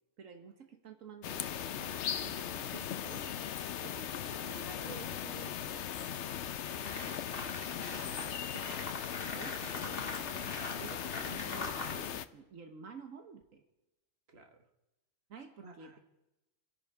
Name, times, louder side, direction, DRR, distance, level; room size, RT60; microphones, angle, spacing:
voice 1, 0.2-3.4 3.8-5.6 8.5-8.6 9.2-13.6 15.3-16.0, right 5 dB, 75° right, 5 dB, 1.6 m, -51 dB
sound 1, 1.2-12.3, left 9 dB, 65° left, 1.0 m, -38 dB
sound 2, 6.2-6.3 6.7-12.0, left 2 dB, 45° left, 2.1 m, -43 dB
voice 2, 7.2-8.7 14.3-14.7 15.6-16.0, right 3 dB, 50° right, 4 dB, 1.9 m, -56 dB
28.0 x 10.5 x 4.8 m, 0.97 s
omnidirectional pair, 1.4 m